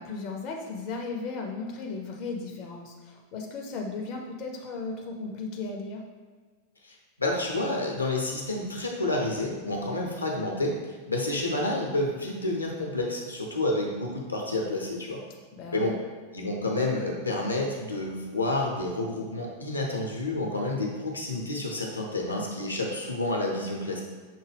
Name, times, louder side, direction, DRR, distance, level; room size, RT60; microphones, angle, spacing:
voice 1, 0.0-6.0 15.5-16.0, left 3 dB, 40° left, 1 dB, 0.5 m, -36 dB
voice 2, 6.8-15.2 15.7-16.0 16.3-24.0, left 2 dB, 80° left, -1 dB, 0.7 m, -29 dB
5.8 x 2.2 x 3.4 m, 1.5 s
figure-of-eight pair, 90°, 0 cm